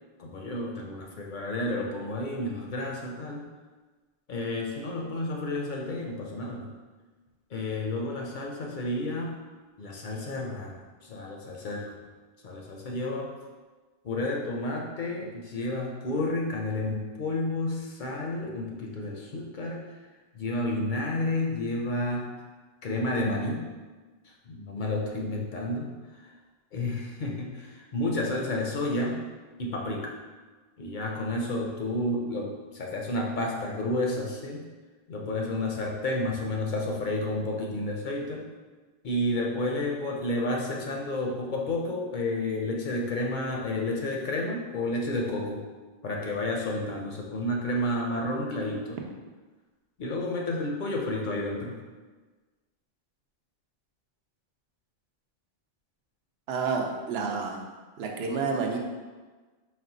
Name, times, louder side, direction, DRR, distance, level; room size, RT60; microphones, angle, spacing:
voice 1, 0.2-3.5 4.3-6.8 7.5-9.4 9.8-12.0 12.4-13.3 14.0-20.0 20.3-22.4 22.8-23.7 24.2-26.4 26.7-29.3 29.6-30.1 30.8-34.7 35.1-38.5 39.0-45.7 46.0-49.0 50.0-51.8, left 1 dB, 60° left, -1 dB, 0.6 m, -31 dB
voice 2, 56.5-57.6 58.0-58.8, right 5 dB, 80° right, 1 dB, 0.8 m, -29 dB
4.2 x 2.1 x 3.8 m, 1.3 s
omnidirectional pair, 1.0 m